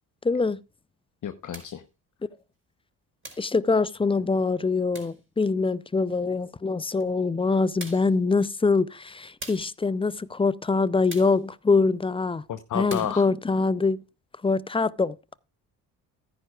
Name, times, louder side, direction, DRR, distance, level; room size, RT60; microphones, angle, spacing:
voice 1, 0.2-0.6 3.4-12.4 12.7-14.0 14.4-15.2, left 4 dB, 15° left, 0.4 m, -24 dB
voice 2, 1.2-1.8 12.5-13.3, left 9 dB, 45° left, 0.9 m, -31 dB
sound 1, 1.5-1.8 3.2-3.5 4.9-5.2 7.0-7.1 7.8-8.2 9.4-9.8 11.1-11.4 12.9-13.2, right 1 dB, 25° right, 4.7 m, -42 dB
14.0 x 10.0 x 2.3 m
hypercardioid pair, 55°, 44 cm